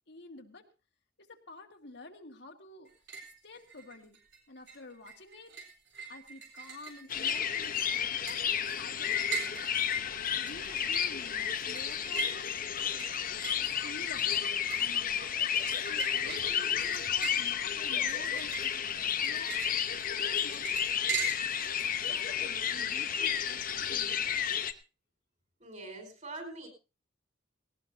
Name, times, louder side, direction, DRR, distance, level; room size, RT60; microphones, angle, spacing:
voice 1, 0.1-0.6 1.2-2.9 3.4-4.2 4.5-5.5 6.1-8.4 8.8-9.6 10.0-12.5 12.9-15.3 15.7-19.5 19.9-21.3 21.6-24.3, left 2 dB, 65° left, 4 dB, 1.9 m, -50 dB
sound 1, 2.9-3.4 3.7-4.4 4.7-21.7, right 6 dB, 80° right, 4.0 m, -42 dB
sound 2, 7.1-24.7, left 8 dB, 50° left, 1.0 m, -32 dB
voice 2, 25.6-26.7, right 2 dB, 40° right, 5 dB, 5.0 m, -43 dB
18.5 x 18.5 x 2.8 m, 0.31 s
head